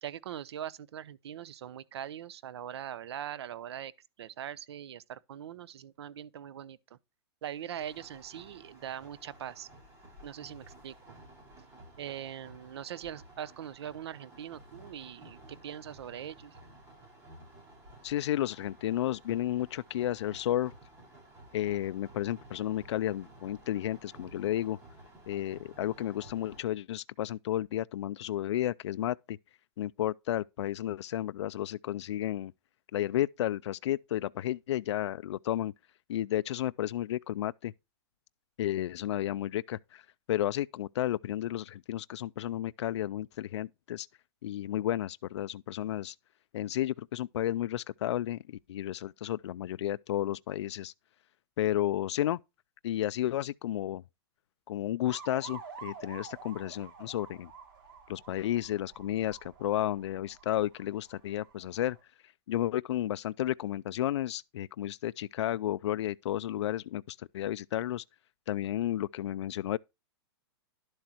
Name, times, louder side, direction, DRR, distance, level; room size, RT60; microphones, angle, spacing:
voice 1, 0.0-3.9 4.2-7.0 7.4-9.7 10.2-10.9 12.0-16.6, right 10 dB, 70° right, 0.8 m, -42 dB
sound 1, 7.7-26.6, right 1 dB, 20° right, 5.7 m, -54 dB
voice 2, 18.0-20.7 21.5-24.8 25.3-29.4 29.8-32.5 32.9-35.7 36.1-37.7 38.6-44.1 44.4-46.2 46.5-50.9 51.6-52.4 52.8-54.0 54.7-57.5 58.1-62.0 62.5-68.0 68.5-69.8, left 12 dB, 85° left, 0.4 m, -32 dB
sound 2, 55.1-62.0, right 5 dB, 50° right, 3.9 m, -50 dB
11.5 x 7.8 x 2.9 m
supercardioid pair, 175°, 14 cm